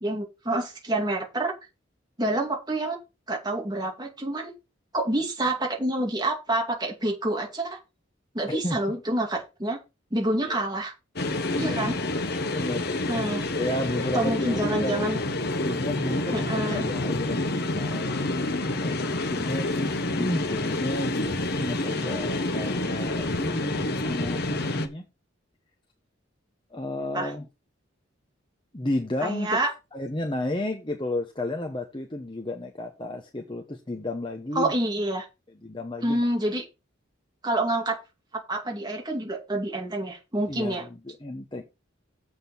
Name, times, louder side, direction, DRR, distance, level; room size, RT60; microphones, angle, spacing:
voice 1, 0.0-1.5 2.2-3.0 3.3-4.5 4.9-7.8 8.3-9.8 10.1-10.9 11.6-12.0 13.1-13.5 14.1-15.2 16.3-16.9 27.1-27.3 29.2-29.7 34.5-35.3 36.0-36.6 37.4-38.0 38.5-40.9, right 1 dB, 20° right, 2.3 m, -27 dB
voice 2, 8.5-8.8 10.4-10.6 11.5-11.8 12.5-12.9 13.5-15.2 15.5-18.2 18.8-25.0 26.7-27.5 28.7-29.6 29.9-34.7 35.6-36.2 40.5-41.6, left 1 dB, 25° left, 1.0 m, -32 dB
sound 1, 11.2-24.9, left 2 dB, 50° left, 1.1 m, -28 dB
7.7 x 6.3 x 5.6 m
head